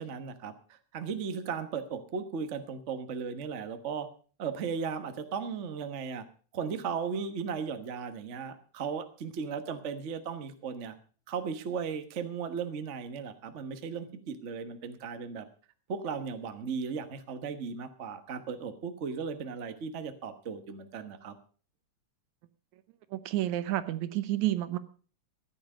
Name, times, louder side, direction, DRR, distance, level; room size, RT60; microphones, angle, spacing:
voice 1, 0.0-4.1 4.4-6.2 6.5-10.9 11.3-15.4 15.9-21.3, right 6 dB, 55° right, 8 dB, 0.8 m, -36 dB
voice 2, 23.1-24.8, right 14 dB, 80° right, 13 dB, 2.2 m, -30 dB
14.5 x 10.0 x 5.5 m, 0.41 s
omnidirectional pair, 3.3 m